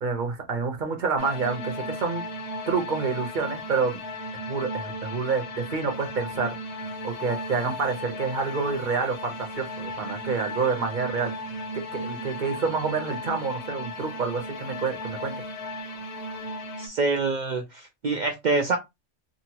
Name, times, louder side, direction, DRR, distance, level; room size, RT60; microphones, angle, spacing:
voice 1, 0.0-2.2 2.7-4.0 4.3-6.5 7.0-11.3 11.9-15.3, right 5 dB, 45° right, 0.9 m, -28 dB
sound 1, 1.2-16.9, left 1 dB, 70° left, 0.9 m, -35 dB
voice 2, 16.8-18.8, right 3 dB, 60° right, 0.4 m, -26 dB
2.7 x 2.6 x 2.8 m
omnidirectional pair, 1.3 m